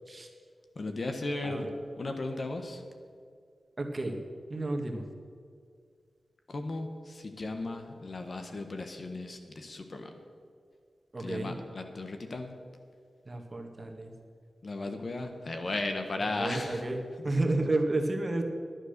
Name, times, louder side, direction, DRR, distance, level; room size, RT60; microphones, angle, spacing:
voice 1, 0.7-1.7 2.0-2.8 6.5-10.1 11.2-12.6 14.6-16.8 17.2-17.4, left 2 dB, 55° left, 6 dB, 1.3 m, -36 dB
voice 2, 3.8-4.2 4.5-5.0 11.1-11.5 13.3-14.1 16.4-17.0 17.2-18.4, right 2 dB, 35° right, 3 dB, 1.7 m, -31 dB
10.5 x 9.8 x 6.7 m, 2.2 s
cardioid pair, 55°, 0 cm